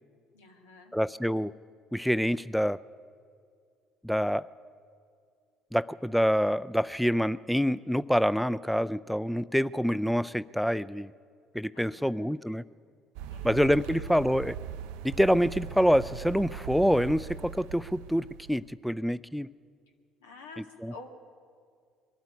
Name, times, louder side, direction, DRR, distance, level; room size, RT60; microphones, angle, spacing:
voice 1, 0.3-1.0 11.7-12.3 13.2-13.5 13.9-14.1 20.2-21.1, left 3 dB, 85° left, 3 dB, 2.0 m, -49 dB
voice 2, 0.9-1.5 1.9-2.8 4.0-4.5 5.7-11.1 11.5-12.6 13.4-14.6 15.0-19.5 20.8-20.9, equal, ahead, 16 dB, 0.4 m, -26 dB
sound 1, 13.1-18.7, right 8 dB, 75° right, 0.4 m, -40 dB
22.0 x 13.0 x 9.6 m, 2.2 s
hypercardioid pair, 55°, 0 cm